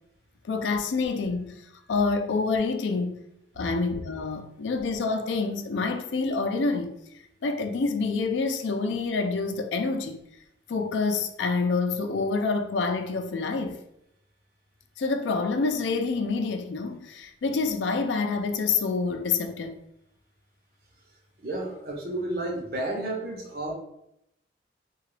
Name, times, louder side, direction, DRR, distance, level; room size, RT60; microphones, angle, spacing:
voice 1, 0.5-1.6 1.9-3.2 3.6-6.9 7.4-10.2 10.7-13.8 15.0-19.7, left 4 dB, 80° left, 0.4 m, -27 dB
voice 2, 21.4-23.7, right 1 dB, 55° right, 0.7 m, -31 dB
2.8 x 2.3 x 3.2 m
head